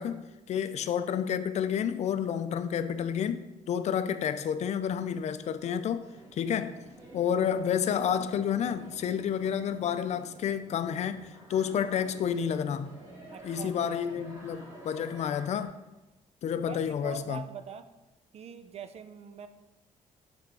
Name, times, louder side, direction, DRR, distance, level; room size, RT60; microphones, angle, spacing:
voice 1, 0.0-6.1 6.3-6.8 7.1-12.9 13.4-15.7 16.4-17.4, left 8 dB, 55° left, 0.4 m, -30 dB
sound 1, 6.0-15.7, right 1 dB, 25° right, 2.1 m, -50 dB
voice 2, 13.3-13.7 14.2-14.3 16.7-17.9 18.3-19.5, right 6 dB, 50° right, 0.5 m, -43 dB
6.6 x 3.5 x 4.7 m
cardioid pair, 125°, 14 cm